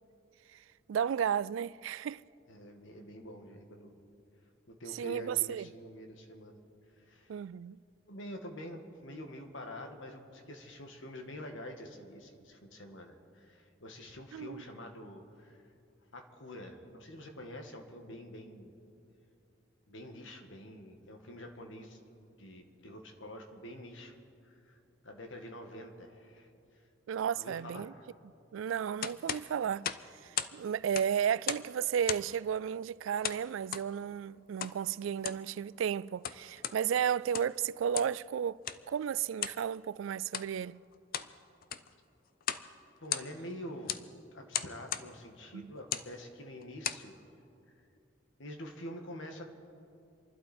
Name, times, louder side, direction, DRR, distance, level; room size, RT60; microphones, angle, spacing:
voice 1, 0.9-2.2 4.9-5.7 7.3-7.8 14.3-14.6 27.1-27.9 28.5-29.9 30.2-38.6 38.9-40.8 45.5-45.7, right 8 dB, 80° right, 0.3 m, -33 dB
voice 2, 2.5-4.0 4.7-6.6 7.0-7.3 8.1-15.6 16.1-18.7 19.9-22.0 22.4-24.1 24.4-26.5 27.4-28.1 43.0-44.0 44.3-47.2 48.4-49.5, left 1 dB, 75° left, 1.8 m, -47 dB
sound 1, 29.0-30.6 30.8-31.7 32.0-32.4 33.2-33.9 34.6-34.8 35.1-35.5 36.0-36.8 37.2-37.6 37.9-38.2 38.6-38.8 39.4-39.6 40.2-40.5 40.9-41.3 41.6-41.9 42.4-42.7 43.0-43.5 43.9-44.1 44.5-45.1 45.8-46.1 46.6-47.1, left 9 dB, 50° left, 0.5 m, -36 dB
28.0 x 12.0 x 4.3 m
head